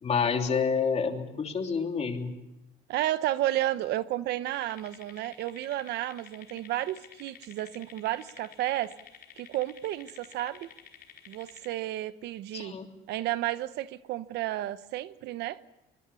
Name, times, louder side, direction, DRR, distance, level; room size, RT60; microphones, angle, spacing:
voice 1, 0.0-2.4 12.5-12.9, left 6 dB, 40° left, 4 dB, 3.2 m, -28 dB
voice 2, 2.9-8.9 9.4-10.7 11.3-12.8 13.1-15.6, right 14 dB, 80° right, 14 dB, 1.0 m, -32 dB
sound 1, 4.5-11.7, left 9 dB, 75° left, 5.0 m, -51 dB
24.5 x 21.5 x 7.0 m, 0.93 s
cardioid pair, 110°, 17 cm